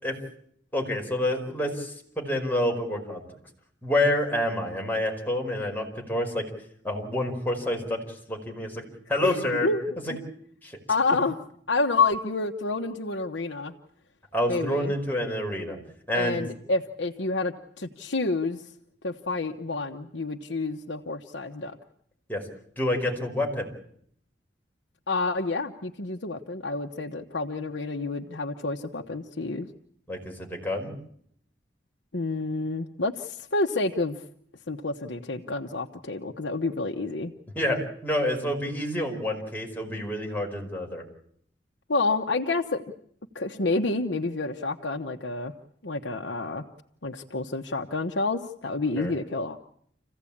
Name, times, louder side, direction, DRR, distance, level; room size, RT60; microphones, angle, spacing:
voice 1, 0.7-3.3 3.8-6.5 6.8-8.8 9.1-9.7 10.6-10.7 14.3-15.8 16.1-16.4 22.3-22.5 22.8-23.7 30.1-30.9 37.5-41.0 49.0-49.1, left 1 dB, 10° left, 0 dB, 5.1 m, -28 dB
voice 2, 9.2-9.8 10.9-11.3 11.7-13.7 14.5-14.9 16.1-18.6 19.0-21.8 25.1-29.7 32.1-34.2 34.7-37.3 41.9-42.8 43.3-45.5 45.8-46.6 47.0-49.6, left 3 dB, 85° left, 3 dB, 1.1 m, -29 dB
27.5 x 16.0 x 8.7 m, 0.68 s
head